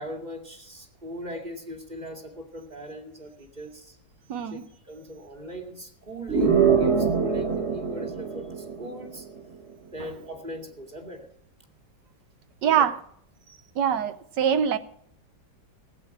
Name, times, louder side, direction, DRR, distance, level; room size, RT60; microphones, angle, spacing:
voice 1, 0.0-4.0 4.5-4.6 4.9-9.3 9.9-11.3 12.6-12.8, equal, 25° right, 2 dB, 2.4 m, -39 dB
voice 2, 4.3-4.6 10.0-10.1 12.6-13.0 13.7-14.8, right 8 dB, 90° right, 10 dB, 1.5 m, -24 dB
sound 1, 6.3-9.2, right 6 dB, 40° right, 1.7 m, -23 dB
17.5 x 8.2 x 6.0 m, 0.67 s
omnidirectional pair, 1.8 m